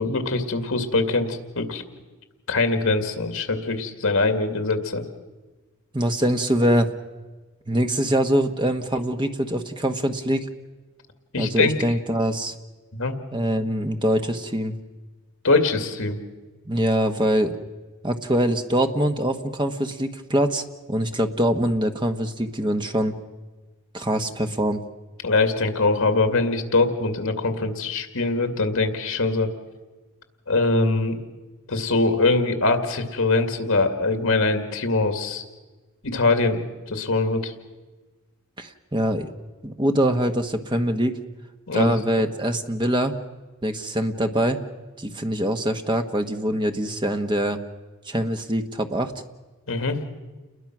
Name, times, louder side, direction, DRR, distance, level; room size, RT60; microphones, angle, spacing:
voice 1, 0.0-1.8 2.5-5.0 11.3-11.7 12.9-13.1 15.4-16.2 25.2-29.5 30.5-31.2 31.7-35.4 36.0-36.6 36.9-37.5 41.7-42.0 49.7-50.0, left 3 dB, 70° left, 7 dB, 2.3 m, -22 dB
voice 2, 5.9-6.9 7.7-10.5 11.4-12.5 13.3-14.7 16.6-17.6 18.0-23.1 23.9-24.8 38.6-39.3 39.6-41.2 41.7-43.1 43.6-44.6 45.0-47.6 48.1-49.1, right 1 dB, 20° right, 6 dB, 1.2 m, -23 dB
29.5 x 21.0 x 6.1 m, 1.2 s
head